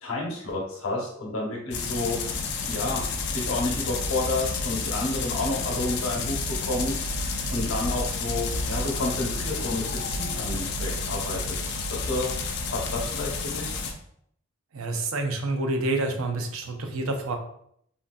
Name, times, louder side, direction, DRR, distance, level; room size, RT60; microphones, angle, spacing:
voice 1, 0.0-3.0 3.3-11.6 11.9-12.3 12.7-13.8, left 2 dB, 75° left, -2 dB, 0.9 m, -30 dB
sound 1, 1.7-13.9, left 3 dB, 50° left, 0.4 m, -30 dB
voice 2, 14.7-17.4, right 2 dB, 75° right, 4 dB, 0.5 m, -28 dB
3.7 x 2.5 x 2.2 m, 0.68 s
head